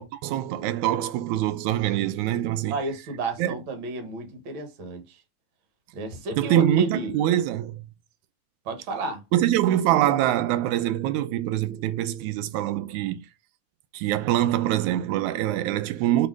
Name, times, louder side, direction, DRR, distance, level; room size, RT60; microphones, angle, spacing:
voice 1, 0.0-2.8 3.4-3.6 6.3-7.9 9.3-13.3 13.9-16.3, right 12 dB, 90° right, 2.1 m, -24 dB
voice 2, 2.7-5.2 5.9-7.2 8.7-9.2, right 2 dB, 50° right, 1.9 m, -32 dB
5.2 x 4.1 x 4.6 m
omnidirectional pair, 3.3 m